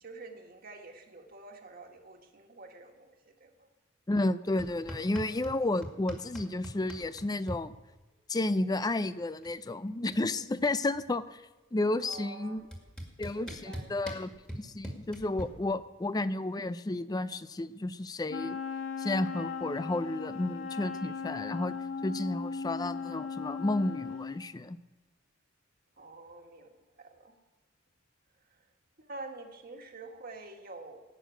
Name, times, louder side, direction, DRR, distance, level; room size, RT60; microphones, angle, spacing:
voice 1, 0.0-3.7 12.0-13.9 26.0-26.7 27.0-27.3 29.0-31.0, right 3 dB, 45° right, 3 dB, 1.6 m, -48 dB
voice 2, 4.1-7.7 8.3-11.4 11.7-12.6 13.2-18.6 19.0-21.8 22.0-24.8, left 2 dB, 20° left, 14 dB, 0.4 m, -32 dB
sound 1, 4.6-5.6 5.8-7.6 8.9-9.0 9.2-9.6 9.9-11.2 12.1-12.2 12.7-15.4, equal, 5° left, 2.1 m, -41 dB
Wind instrument woodwind instrument, 18.3-24.4, left 5 dB, 70° left, 1.3 m, -37 dB
17.0 x 6.5 x 9.1 m, 1.2 s
head